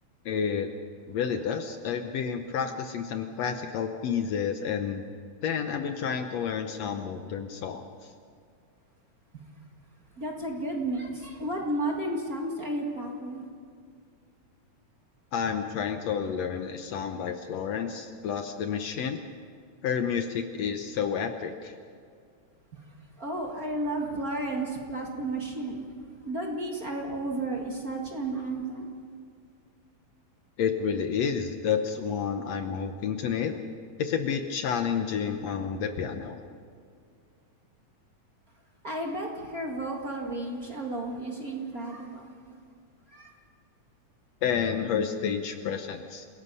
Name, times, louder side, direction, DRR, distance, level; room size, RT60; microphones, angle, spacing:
voice 1, 0.3-0.7 1.1-5.0 5.4-8.1 15.3-19.2 19.8-21.7 30.6-33.6 34.0-36.4 44.4-46.3, left 7 dB, 70° left, 6 dB, 1.9 m, -30 dB
voice 2, 10.2-13.4 22.7-22.8 23.2-25.8 26.3-28.9 38.8-42.4 43.1-43.3, right 2 dB, 35° right, 0 dB, 2.0 m, -33 dB
28.5 x 18.0 x 5.5 m, 2.2 s
omnidirectional pair, 3.5 m